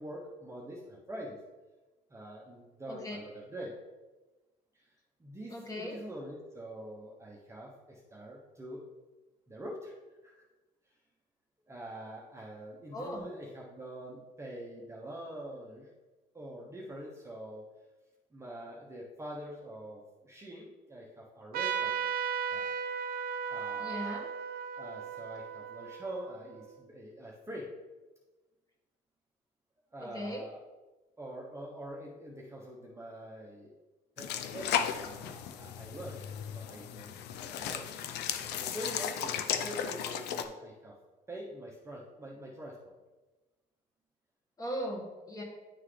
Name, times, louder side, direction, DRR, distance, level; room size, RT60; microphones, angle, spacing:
voice 1, 0.0-1.4 2.1-3.8 4.8-4.9 5.2-8.8 9.5-10.0 10.2-10.4 11.7-15.9 16.3-17.7 18.3-22.1 22.5-22.7 23.5-24.2 24.7-27.7 29.9-30.6 31.2-33.7 34.2-38.0 38.4-40.9 41.3-42.9, right 1 dB, 15° right, -2 dB, 0.9 m, -45 dB
voice 2, 2.9-3.2 5.5-6.0 12.9-13.3 23.7-24.3 30.0-30.5 44.6-45.4, equal, 20° left, 0 dB, 1.6 m, -38 dB
Trumpet, 21.5-26.6, right 7 dB, 65° right, 0.6 m, -36 dB
sound 1, 34.2-40.4, left 8 dB, 80° left, 0.5 m, -35 dB
9.8 x 3.7 x 3.3 m, 1.2 s
cardioid pair, 110°, 17 cm